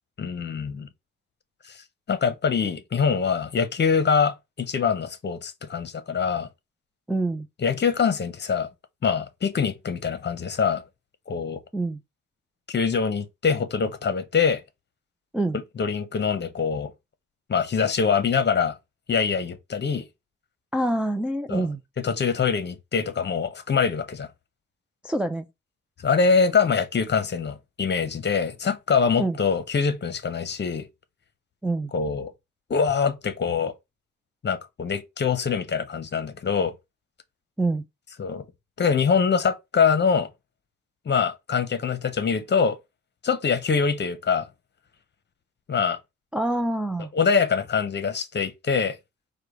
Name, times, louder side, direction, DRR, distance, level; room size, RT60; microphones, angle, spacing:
voice 1, 0.2-0.9 1.7-6.5 7.6-8.7 9.0-10.8 11.3-11.6 12.7-14.6 15.8-16.9 17.5-18.8 19.1-20.0 21.5-21.7 22.0-24.3 26.0-30.9 31.9-32.3 32.7-33.7 34.4-36.7 38.2-38.5 38.8-40.3 41.1-42.8 43.2-44.5 45.7-46.0 47.1-49.0, left 6 dB, 35° left, 0.9 m, -24 dB
voice 2, 7.1-7.5 11.7-12.0 15.3-15.6 20.7-21.8 25.0-25.5 29.2-29.4 31.6-31.9 37.6-37.9 46.3-47.1, right 2 dB, 5° right, 0.4 m, -26 dB
4.8 x 2.3 x 4.9 m
cardioid pair, 90°, 30 cm